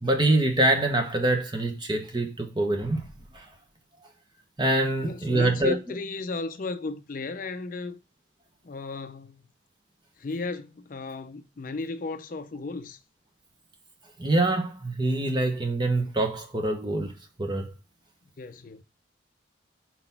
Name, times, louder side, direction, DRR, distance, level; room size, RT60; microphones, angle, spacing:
voice 1, 0.0-3.5 4.6-5.7 14.2-17.1 17.4-17.7, right 2 dB, 25° right, 1.0 m, -25 dB
voice 2, 5.0-8.0 8.6-9.4 10.2-13.0 18.4-18.8, left 3 dB, 45° left, 0.4 m, -35 dB
4.2 x 4.0 x 5.6 m
head